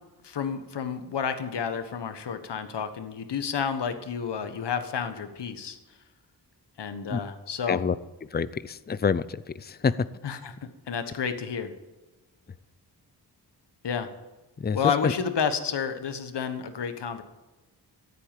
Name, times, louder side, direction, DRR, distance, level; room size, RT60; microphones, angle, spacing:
voice 1, 0.2-5.8 6.8-7.8 10.2-10.6 10.9-11.7 13.8-14.1 14.7-17.2, left 6 dB, 80° left, 9 dB, 1.4 m, -30 dB
voice 2, 8.3-10.0 14.6-15.1, left 6 dB, 25° left, 16 dB, 0.5 m, -27 dB
15.0 x 8.4 x 9.1 m, 1.1 s
wide cardioid pair, 120°, 41 cm